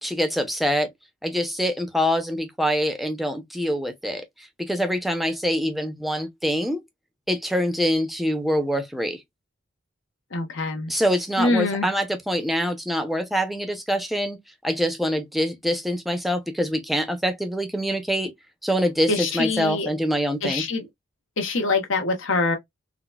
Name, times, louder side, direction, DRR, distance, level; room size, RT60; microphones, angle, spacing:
voice 1, 0.0-0.9 1.2-6.8 7.3-9.2 10.9-14.4 14.6-18.3 18.6-20.6, equal, ahead, 0.6 m, -25 dB
voice 2, 10.3-10.9 11.4-11.9 19.1-19.9 20.4-20.8 21.4-22.6, left 3 dB, 75° left, 1.0 m, -24 dB
3.9 x 2.1 x 2.3 m
head